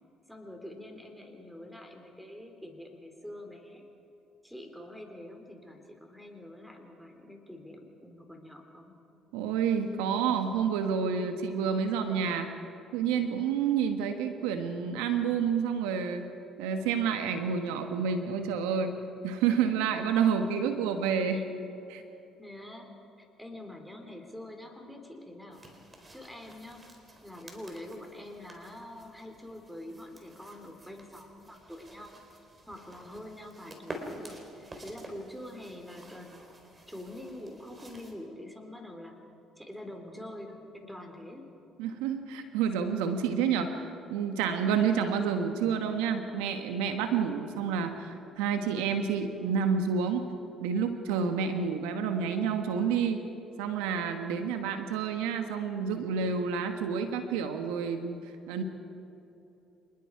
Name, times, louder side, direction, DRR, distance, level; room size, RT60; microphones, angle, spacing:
voice 1, 0.3-3.8 4.4-8.9 21.3-21.4 22.4-25.7 26.1-26.8 27.2-32.2 32.7-36.4 36.9-39.2 39.6-41.5, left 1 dB, ahead, 4 dB, 3.8 m, -45 dB
voice 2, 9.3-12.5 12.9-16.3 16.6-18.9 19.2-21.4 21.9-22.0 41.8-50.3 50.6-53.2 53.6-58.2 58.5-58.6, right 6 dB, 90° right, 7 dB, 1.4 m, -29 dB
sound 1, 25.5-38.1, right 1 dB, 25° right, 3.9 m, -49 dB
26.5 x 20.5 x 4.8 m, 2.9 s
supercardioid pair, 75°, 0 cm